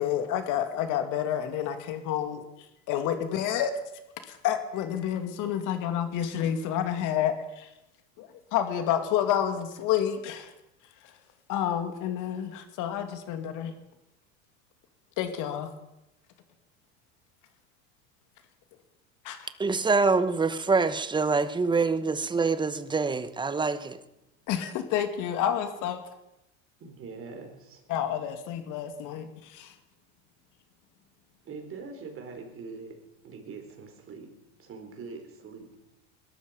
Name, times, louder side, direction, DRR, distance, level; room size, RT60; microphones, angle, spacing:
voice 1, 0.0-3.7 4.3-7.7 8.2-10.5 11.0-11.1 11.5-13.7 15.2-15.7 19.2-19.5 24.5-26.0 27.9-29.7, left 10 dB, 55° left, 2.4 m, -29 dB
voice 2, 19.6-24.0, right 4 dB, 10° right, 1.0 m, -25 dB
voice 3, 26.8-27.9 28.7-28.8 31.4-33.0 33.2-34.3 34.6-35.7, right 4 dB, 35° right, 4.4 m, -43 dB
20.5 x 13.0 x 5.3 m
supercardioid pair, 115°, 36 cm